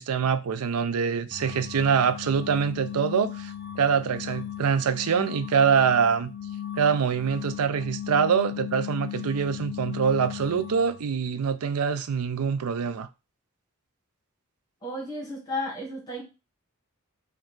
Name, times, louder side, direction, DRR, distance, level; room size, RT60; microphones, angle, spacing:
voice 1, 0.0-6.3 6.8-13.1, right 6 dB, 90° right, 0.4 m, -24 dB
sound 1, 1.3-11.0, left 10 dB, 45° left, 0.5 m, -37 dB
voice 2, 14.8-16.2, left 1 dB, 20° left, 1.1 m, -33 dB
4.7 x 2.3 x 4.5 m
head